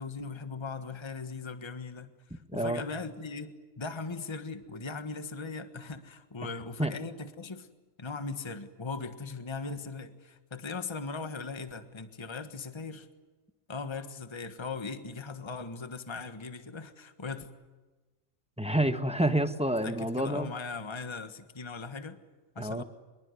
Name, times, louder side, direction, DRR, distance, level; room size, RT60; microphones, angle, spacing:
voice 1, 0.0-7.7 8.0-13.1 13.7-17.5 19.8-22.2 22.5-22.8, left 4 dB, 20° left, 9 dB, 1.4 m, -39 dB
voice 2, 2.5-2.8 6.8-6.9 18.6-20.5 22.6-22.8, right 1 dB, 5° right, 8 dB, 1.2 m, -28 dB
25.0 x 22.5 x 9.7 m, 1.2 s
omnidirectional pair, 1.4 m